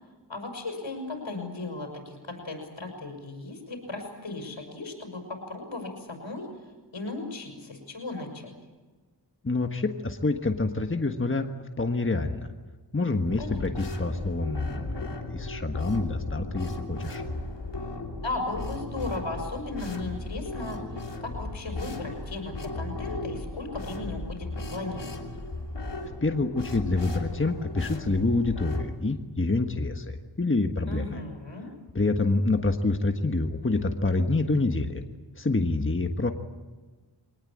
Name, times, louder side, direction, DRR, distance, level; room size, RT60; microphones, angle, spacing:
voice 1, 0.3-6.5 6.9-8.5 13.4-13.6 18.2-20.8 21.2-25.4 30.9-31.7, left 2 dB, 85° left, 3 dB, 5.9 m, -36 dB
voice 2, 9.4-11.5 11.8-12.5 12.9-17.2 26.0-31.2 31.9-35.0 35.4-36.3, left 3 dB, 25° left, 6 dB, 1.5 m, -27 dB
sound 1, 13.3-28.8, left 2 dB, 70° left, 3.0 m, -36 dB
23.5 x 19.0 x 8.8 m, 1.3 s
wide cardioid pair, 65°, 44 cm